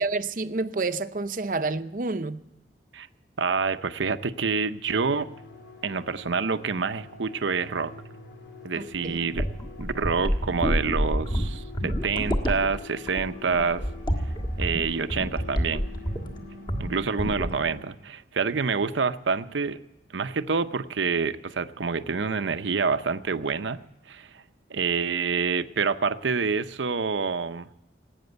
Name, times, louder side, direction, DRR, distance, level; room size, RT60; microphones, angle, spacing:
voice 1, 0.0-2.4 8.8-9.2, right 3 dB, 45° right, 0.6 m, -29 dB
voice 2, 3.4-5.3 5.8-7.9 8.6-9.5 9.8-13.8 14.6-15.8 16.8-19.8 20.1-23.8 24.1-24.4 24.7-27.7, right 5 dB, 85° right, 0.7 m, -27 dB
sound 1, 4.9-17.8, left 3 dB, 75° left, 2.9 m, -45 dB
sound 2, 8.9-16.4 16.7-16.9 17.2-17.6, equal, 25° left, 1.5 m, -28 dB
18.5 x 8.9 x 7.9 m
head